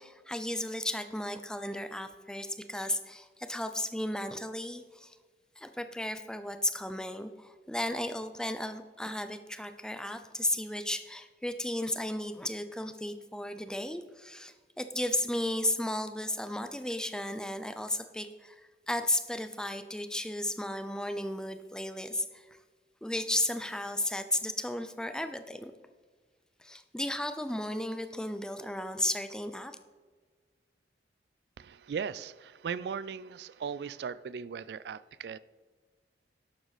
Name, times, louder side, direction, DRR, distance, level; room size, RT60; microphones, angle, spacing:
voice 1, 0.0-5.2 5.6-18.6 18.9-22.6 23.0-25.7 26.6-29.8, left 1 dB, 5° left, 9 dB, 0.5 m, -34 dB
voice 2, 31.6-35.4, right 6 dB, 70° right, 17 dB, 0.3 m, -38 dB
11.5 x 7.8 x 4.1 m, 1.5 s
head